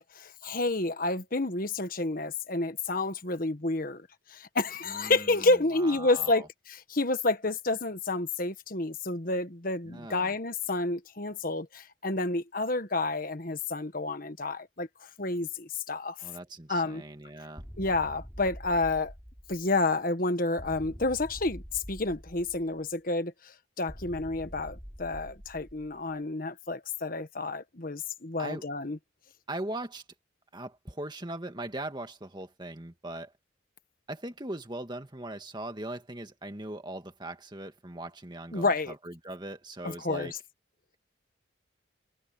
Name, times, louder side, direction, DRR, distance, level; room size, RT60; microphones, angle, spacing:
voice 1, 0.0-14.9 15.2-16.2 16.7-17.0 17.8-19.1 19.5-29.0 38.5-38.9 39.8-40.4, left 2 dB, 45° left, 1.4 m, -30 dB
voice 2, 4.9-6.5 9.8-10.3 16.2-17.6 28.4-28.6 29.5-30.0 30.5-33.3 34.1-40.3, right 1 dB, 20° right, 1.9 m, -40 dB
sound 1, 17.6-19.9 20.6-22.9 23.9-26.1, equal, ahead, 3.4 m, -45 dB
head